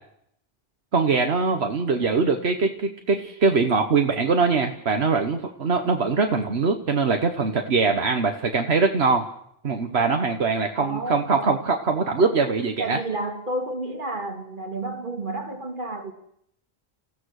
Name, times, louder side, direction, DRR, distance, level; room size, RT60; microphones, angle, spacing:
voice 1, 0.9-9.2 9.6-13.0, right 4 dB, 75° right, 1.5 m, -22 dB
voice 2, 10.8-11.6 12.8-16.1, right 2 dB, 50° right, 2.5 m, -31 dB
29.5 x 16.0 x 6.5 m
omnidirectional pair, 1.1 m